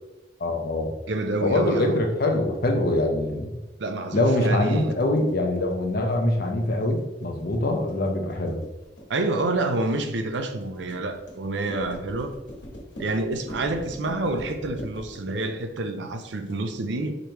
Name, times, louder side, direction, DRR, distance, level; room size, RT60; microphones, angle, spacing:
voice 1, 0.4-0.9 1.4-3.6 4.1-8.6, left 1 dB, 55° left, 2 dB, 0.7 m, -24 dB
voice 2, 1.1-2.0 3.8-4.9 9.1-12.3 13.0-17.1, right 2 dB, 75° right, 6 dB, 0.5 m, -28 dB
sound 1, 5.0-16.5, equal, 80° left, 1.5 m, -43 dB
5.1 x 3.2 x 3.0 m, 1.1 s
head